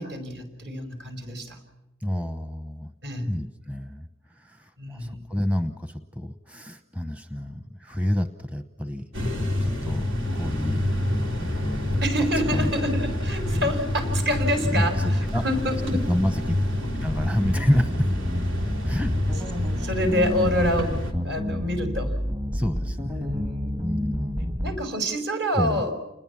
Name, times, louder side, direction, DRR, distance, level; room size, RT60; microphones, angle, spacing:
voice 1, 0.0-1.6 3.0-3.3 4.8-5.2 12.0-16.0 19.8-22.2 23.1-23.7 24.6-26.0, equal, 60° right, 7 dB, 5.7 m, -27 dB
voice 2, 2.0-2.9 3.3-9.1 9.6-12.0 12.5-12.7 13.5-13.7 14.6-15.4 16.1-16.5 16.9-18.1 18.8-19.1 22.5-23.5 23.8-24.6 25.6-25.8, left 1 dB, 5° right, 9 dB, 0.9 m, -29 dB
sound 1, 9.1-21.1, left 1 dB, 80° right, 3.5 m, -27 dB
sound 2, 16.9-24.9, equal, 45° right, 1.1 m, -37 dB
sound 3, 17.4-24.8, equal, 25° right, 1.6 m, -30 dB
29.0 x 21.0 x 7.2 m, 0.97 s
head